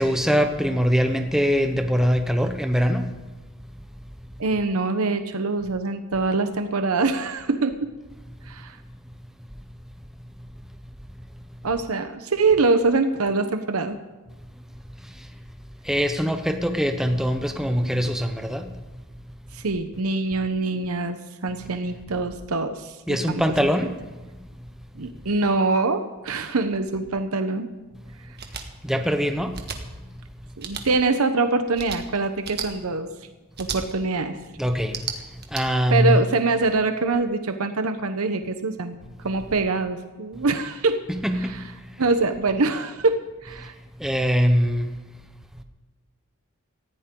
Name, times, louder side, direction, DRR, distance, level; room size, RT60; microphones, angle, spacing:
voice 1, 0.0-3.1 15.8-18.7 23.1-24.0 28.8-29.6 34.6-35.0 35.5-36.2 41.1-41.6 44.0-44.9, equal, ahead, 6 dB, 1.0 m, -22 dB
voice 2, 4.4-7.9 8.5-8.8 11.6-14.0 19.5-23.4 25.0-27.7 30.6-33.1 33.6-34.4 35.9-39.0 39.2-41.0 41.4-41.6 42.0-43.7, right 3 dB, 90° right, 8 dB, 1.0 m, -24 dB
sound 1, 28.4-28.6 29.5-29.8 30.6-30.8 31.7-32.0 32.4-32.7 33.6-33.8 34.8-35.6, right 7 dB, 50° right, 1.6 m, -33 dB
19.0 x 15.0 x 3.8 m, 1.2 s
head